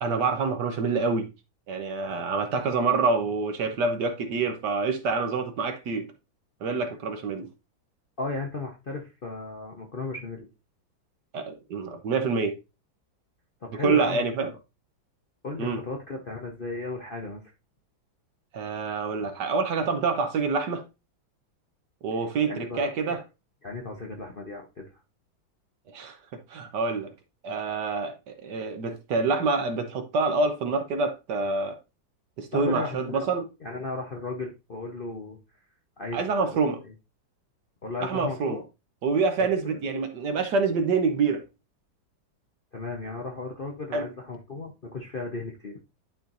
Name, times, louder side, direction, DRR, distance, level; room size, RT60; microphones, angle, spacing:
voice 1, 0.0-1.3 1.7-6.1 6.6-7.5 11.3-12.5 13.8-14.5 15.6-15.8 18.5-20.8 22.0-23.2 25.9-26.1 26.5-27.1 27.4-31.8 32.4-33.4 36.1-36.8 38.0-38.6 39.0-41.4 43.9-44.0, right 4 dB, 65° right, 1.4 m, -26 dB
voice 2, 8.2-10.5 13.6-14.6 15.4-17.4 22.4-23.2 23.6-24.9 32.5-33.3 33.6-35.4 36.0-36.5 36.8-36.9 37.8-38.6 39.4-39.8 42.7-45.8, left 3 dB, 40° left, 0.8 m, -35 dB
11.5 x 4.4 x 2.6 m
omnidirectional pair, 2.1 m